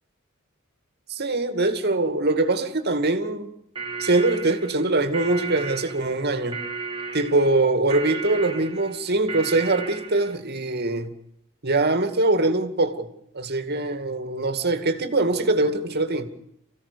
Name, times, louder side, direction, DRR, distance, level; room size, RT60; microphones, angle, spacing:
voice 1, 1.1-3.5 4.0-6.7 7.1-11.1 11.6-13.1 13.3-16.3, right 2 dB, 50° right, 2.4 m, -23 dB
sound 1, 3.7-10.4, right 4 dB, 25° right, 2.1 m, -34 dB
29.0 x 16.0 x 7.0 m
head